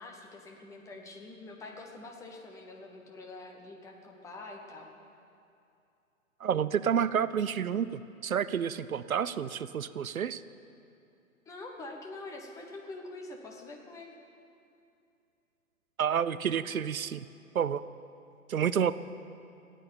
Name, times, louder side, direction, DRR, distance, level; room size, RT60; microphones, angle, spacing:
voice 1, 0.0-4.9 11.5-14.1, left 2 dB, 5° left, 1 dB, 0.8 m, -45 dB
voice 2, 6.4-10.4 16.0-17.3 17.5-17.8 18.5-18.9, right 8 dB, 75° right, 16 dB, 0.6 m, -29 dB
14.5 x 9.1 x 8.7 m, 2.6 s
figure-of-eight pair, 120°, 43 cm